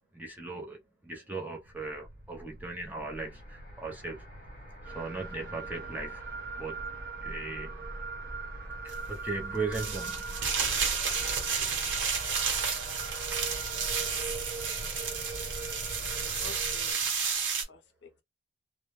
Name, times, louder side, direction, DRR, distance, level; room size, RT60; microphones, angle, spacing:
voice 1, 0.1-4.3 4.9-6.2 6.6-6.8 7.2-7.8 8.8-10.4, right 3 dB, 10° right, 0.5 m, -38 dB
sound 1, 1.6-16.6, equal, 45° left, 1.0 m, -45 dB
sound 2, 4.8-16.9, right 5 dB, 50° right, 1.0 m, -41 dB
sound 3, 8.9-9.0 9.7-17.6, right 6 dB, 85° right, 0.9 m, -31 dB
voice 2, 11.7-12.0 14.0-14.4 16.2-17.1 17.7-18.2, left 4 dB, 60° left, 0.5 m, -51 dB
2.1 x 2.0 x 2.9 m
head